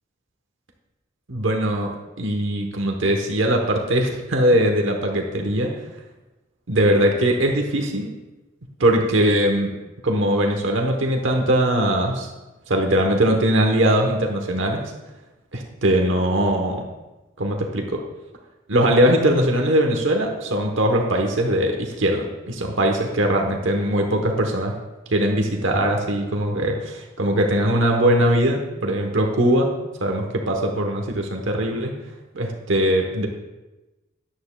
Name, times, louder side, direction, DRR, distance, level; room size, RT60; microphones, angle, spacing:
voice 1, 1.3-5.7 6.7-8.1 8.8-9.7 10.0-12.3 12.7-14.9 15.5-16.9 17.4-18.0 18.7-24.7 25.1-29.7 30.0-31.9 32.3-33.3, right 1 dB, 75° right, 2 dB, 1.1 m, -21 dB
13.5 x 9.4 x 2.3 m, 1.1 s
head